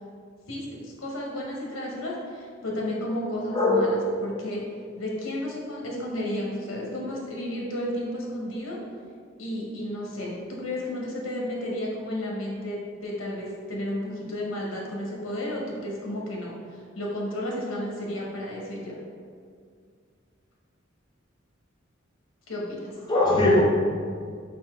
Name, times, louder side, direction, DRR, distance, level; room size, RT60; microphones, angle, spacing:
voice 1, 0.5-4.6 5.0-8.8 9.4-19.0 22.5-22.9, left 1 dB, 85° left, -3 dB, 1.0 m, -32 dB
voice 2, 3.5-4.1 23.1-23.6, left 1 dB, 20° left, -4 dB, 0.7 m, -20 dB
3.9 x 2.7 x 4.4 m, 2.1 s
head